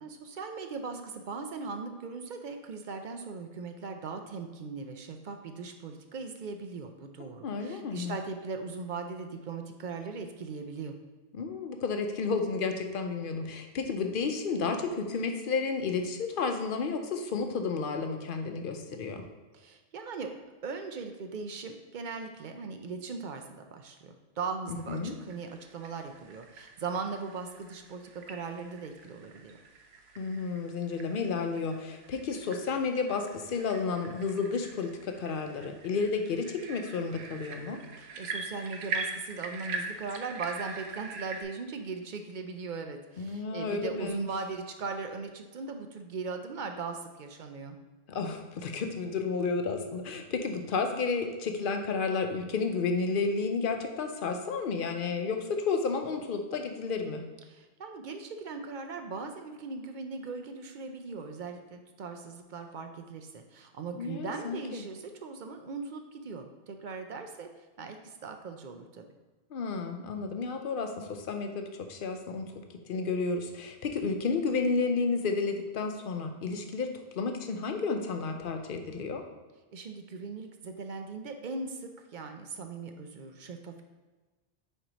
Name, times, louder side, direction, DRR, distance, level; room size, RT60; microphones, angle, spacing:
voice 1, 0.0-10.9 19.5-20.3 20.6-29.6 38.0-47.8 57.5-69.0 79.7-83.8, right 4 dB, 55° right, 5 dB, 0.6 m, -39 dB
voice 2, 7.4-8.2 11.3-19.2 24.7-25.1 30.2-37.8 43.2-44.3 48.1-57.2 63.9-64.8 69.5-72.5 72.9-76.9 77.1-79.2, left 4 dB, 60° left, 5 dB, 0.8 m, -31 dB
sound 1, 25.0-41.4, right 4 dB, 80° right, 0.9 m, -43 dB
4.5 x 4.2 x 5.0 m, 1.3 s
omnidirectional pair, 1.1 m